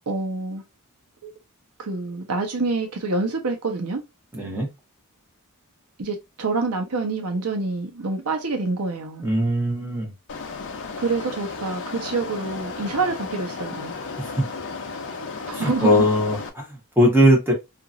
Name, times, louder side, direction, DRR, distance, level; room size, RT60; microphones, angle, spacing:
voice 1, 0.1-0.6 1.2-1.3 1.8-4.0 6.0-9.3 11.0-13.9 15.5-16.1, right 3 dB, 85° right, 0.8 m, -27 dB
voice 2, 4.3-4.7 9.2-10.1 14.2-14.4 15.5-17.5, equal, 10° right, 1.2 m, -20 dB
sound 1, 10.3-16.5, left 4 dB, 55° left, 0.6 m, -34 dB
2.9 x 2.6 x 2.5 m
head